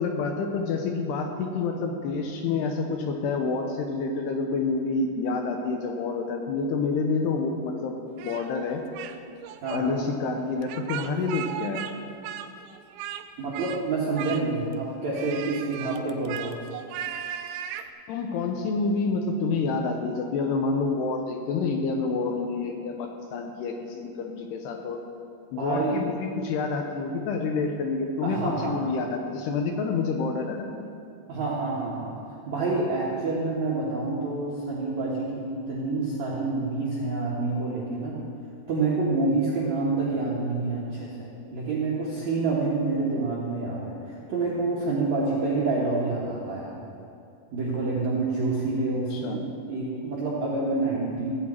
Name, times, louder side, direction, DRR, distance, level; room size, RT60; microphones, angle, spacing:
voice 1, 0.0-8.0 8.2-8.8 9.7-11.8 18.1-25.0 25.5-30.9 49.1-49.4, left 4 dB, 80° left, 3 dB, 2.6 m, -28 dB
Speech, 8.2-9.2 9.4-9.8 10.6-11.9 12.2-13.2 13.5-13.8 14.1-14.7 15.1-17.9, right 10 dB, 85° right, 2.9 m, -36 dB
voice 2, 9.6-10.0 13.4-16.6 25.6-26.0 28.2-28.8 31.3-38.2 38.7-46.7 47.5-51.3, right 3 dB, 70° right, -6 dB, 1.8 m, -28 dB
15.5 x 8.8 x 4.3 m, 2.7 s
omnidirectional pair, 5.2 m